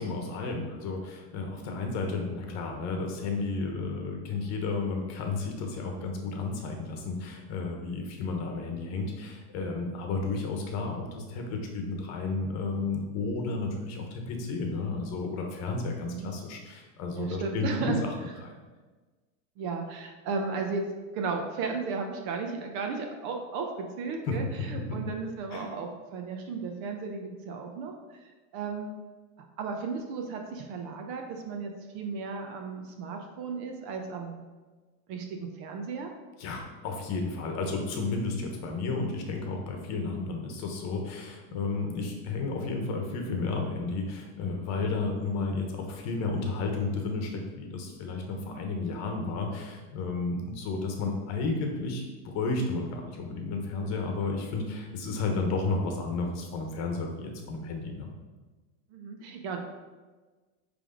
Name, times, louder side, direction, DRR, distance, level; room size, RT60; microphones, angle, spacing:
voice 1, 0.0-18.1 18.4-18.5 24.3-24.4 25.5-25.7 36.4-58.1, left 3 dB, 40° left, 2 dB, 1.1 m, -32 dB
voice 2, 15.9-16.3 17.1-18.0 19.6-20.8 21.1-23.7 24.0-28.2 28.5-28.9 29.6-34.4 35.1-36.1 41.5-41.7 48.4-48.7 58.9-59.6, right 4 dB, 45° right, 3 dB, 0.9 m, -35 dB
9.5 x 3.5 x 3.8 m, 1.3 s
supercardioid pair, 150°, 43 cm